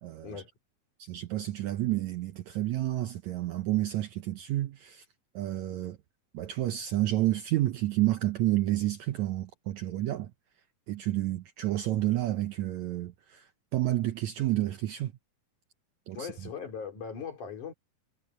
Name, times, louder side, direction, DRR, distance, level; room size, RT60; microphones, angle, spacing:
voice 1, 0.0-0.4 1.0-5.0 5.4-6.0 6.3-10.3 10.9-15.1 16.1-16.3, right 15 dB, 75° right, 1.8 m, -30 dB
voice 2, 16.1-17.7, left 6 dB, 60° left, 4.8 m, -39 dB
omnidirectional pair, 4.0 m